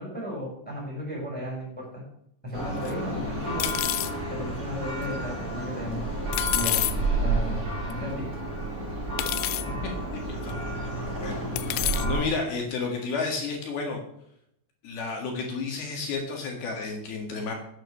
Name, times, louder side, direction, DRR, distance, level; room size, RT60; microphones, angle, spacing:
voice 1, 0.0-2.0 2.4-3.7 4.3-6.0 6.5-6.8 7.2-7.6 7.9-8.2, equal, ahead, -5 dB, 5.6 m, -34 dB
Church bell, 2.5-12.2, right 2 dB, 15° right, 5.8 m, -30 dB
sound 1, 2.9-3.0 3.6-4.1 6.3-6.9 7.9-8.0 9.2-9.6 10.5-10.6 11.6-12.1, left 17 dB, 85° left, 2.6 m, -27 dB
voice 2, 10.3-14.0 14.8-17.5, left 4 dB, 60° left, 1 dB, 3.4 m, -32 dB
10.5 x 9.1 x 6.5 m, 0.74 s
omnidirectional pair, 5.5 m